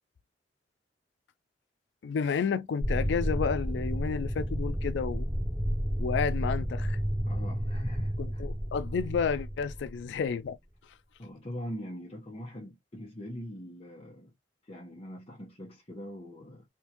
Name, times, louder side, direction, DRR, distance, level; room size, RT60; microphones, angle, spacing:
voice 1, 2.0-5.3 6.0-7.0 8.2-10.6, left 6 dB, 75° left, 0.3 m, -31 dB
sound 1, 2.8-10.2, equal, 25° right, 1.3 m, -31 dB
voice 2, 7.2-8.4 11.2-14.3 14.7-16.6, equal, 35° left, 1.1 m, -42 dB
3.5 x 2.5 x 2.9 m
head